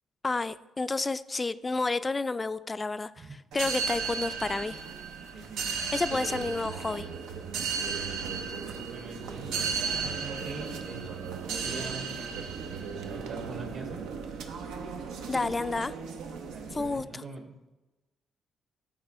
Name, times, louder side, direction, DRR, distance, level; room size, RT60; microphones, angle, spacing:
voice 1, 0.2-4.8 5.9-7.1 15.3-15.9 16.7-17.2, left 3 dB, 25° left, 14 dB, 0.3 m, -30 dB
sound 1, 3.5-17.0, right 5 dB, 90° right, 0.7 m, -35 dB
voice 2, 5.3-5.8 8.9-14.0 16.5-17.5, right 3 dB, 60° right, 2 dB, 1.9 m, -43 dB
12.0 x 4.4 x 3.4 m, 1.0 s
cardioid pair, 90°, 0 cm